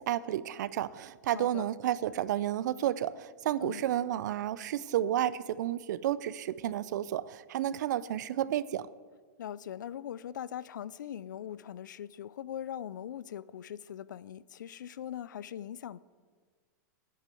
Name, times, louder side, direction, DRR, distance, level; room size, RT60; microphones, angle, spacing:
voice 1, 0.1-8.9, right 12 dB, 75° right, 0.5 m, -31 dB
voice 2, 1.3-1.7 3.6-3.8 9.4-16.0, left 10 dB, 90° left, 0.4 m, -41 dB
8.4 x 8.3 x 6.9 m
hypercardioid pair, 125°, 10 cm